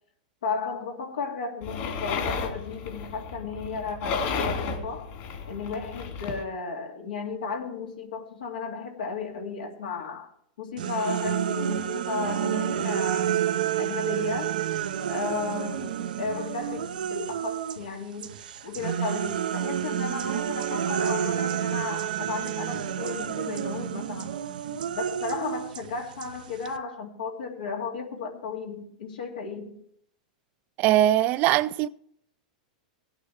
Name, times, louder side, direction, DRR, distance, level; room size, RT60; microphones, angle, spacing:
voice 1, 0.4-5.1 5.5-10.3 10.6-13.4 13.8-14.6 15.1-18.4 18.6-24.4 24.9-29.8, left 5 dB, 90° left, 2.3 m, -34 dB
sound 1, 1.6-6.4, left 5 dB, 50° left, 2.7 m, -33 dB
sound 2, 10.8-17.9 18.2-26.8, right 10 dB, 85° right, 0.7 m, -30 dB
voice 2, 30.8-31.9, right 13 dB, 40° right, 0.4 m, -21 dB
17.0 x 8.9 x 3.3 m
hypercardioid pair, 130°, 4 cm